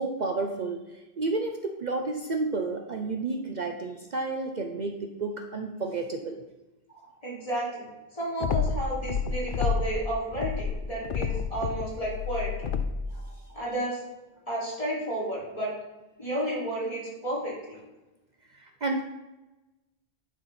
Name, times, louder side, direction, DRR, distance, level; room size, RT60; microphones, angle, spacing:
voice 1, 0.0-6.4 18.5-19.0, right 3 dB, 50° right, 4 dB, 0.8 m, -31 dB
voice 2, 6.9-7.8 8.1-12.7 13.1-14.0 14.4-15.7 16.2-17.8, right 1 dB, 35° left, -6 dB, 3.5 m, -32 dB
sound 1, 8.4-10.0 10.3-13.1, left 6 dB, 60° left, 0.7 m, -29 dB
10.0 x 4.4 x 5.6 m, 1.1 s
omnidirectional pair, 1.0 m